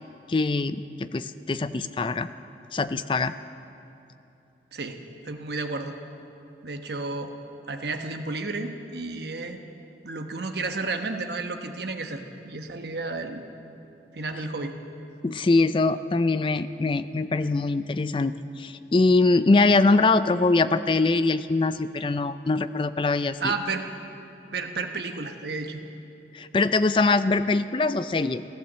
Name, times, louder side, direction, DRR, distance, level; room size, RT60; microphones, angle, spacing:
voice 1, 0.3-2.3 2.7-3.3 15.2-23.5 26.3-28.4, left 3 dB, 30° left, 13 dB, 0.4 m, -23 dB
voice 2, 4.7-6.0 6.6-7.3 7.7-9.6 10.0-13.4 14.1-14.8 23.4-23.8 24.5-25.8, right 3 dB, 70° right, 5 dB, 1.1 m, -32 dB
16.0 x 11.5 x 7.4 m, 2.8 s
head